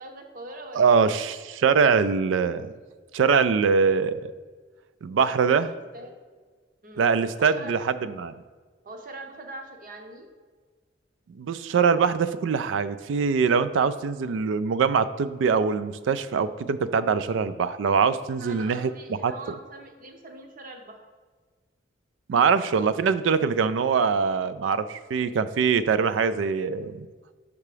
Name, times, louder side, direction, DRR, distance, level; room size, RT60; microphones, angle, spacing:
voice 1, 0.0-1.2 5.9-6.2 6.8-7.1 7.4-7.8 8.8-10.3 18.4-21.0, right 2 dB, 45° right, 4 dB, 0.8 m, -42 dB
voice 2, 0.7-2.7 3.1-4.3 5.0-5.7 7.0-8.3 11.3-18.9 19.2-19.3 22.3-27.1, right 5 dB, 85° right, 14 dB, 0.3 m, -23 dB
6.7 x 3.5 x 4.9 m, 1.5 s
head